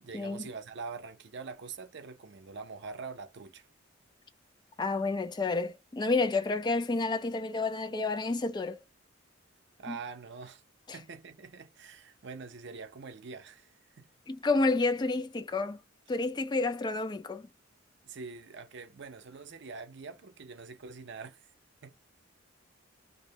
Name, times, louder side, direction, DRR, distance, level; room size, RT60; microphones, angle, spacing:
voice 1, 0.0-3.7 9.8-10.6 10.9-14.1 18.0-21.5 21.8-21.9, right 4 dB, 60° right, 0.6 m, -44 dB
voice 2, 4.8-8.8 9.9-10.0 14.3-15.8 16.1-17.5, left 3 dB, 20° left, 0.3 m, -30 dB
2.6 x 2.1 x 2.7 m
head